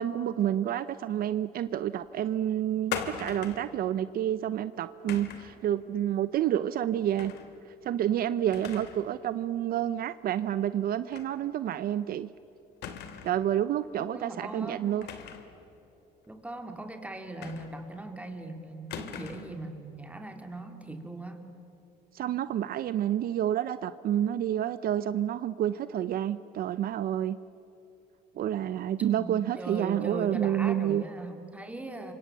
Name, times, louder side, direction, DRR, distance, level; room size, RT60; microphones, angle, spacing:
voice 1, 0.0-7.3 7.8-12.3 13.2-15.1 22.1-27.4 28.4-31.0, right 11 dB, 60° right, 14 dB, 0.7 m, -29 dB
sound 1, 2.9-3.7 5.1-5.5 7.2-7.5 7.9-8.0 8.5-9.1 9.4-9.5 11.1-11.3 11.7-11.8 12.8-13.4 15.0-15.6 17.4-18.0 18.9-19.6, left 8 dB, 80° left, 2.7 m, -39 dB
voice 2, 14.1-15.0 16.3-21.4 29.0-32.1, right 2 dB, 10° right, 5 dB, 3.2 m, -39 dB
29.5 x 26.0 x 7.5 m, 3.0 s
cardioid pair, 110°, 17 cm